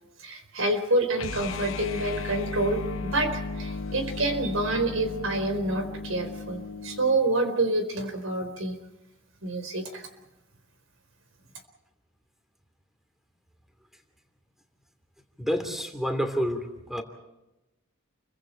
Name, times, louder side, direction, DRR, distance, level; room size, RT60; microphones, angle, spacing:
voice 1, 0.2-8.8 9.4-10.1, right 2 dB, 80° right, 8 dB, 4.2 m, -27 dB
sound 1, 1.1-7.2, left 3 dB, 85° left, 0.8 m, -35 dB
voice 2, 15.4-17.0, equal, ahead, 7 dB, 2.8 m, -29 dB
29.5 x 24.0 x 4.5 m, 0.97 s
head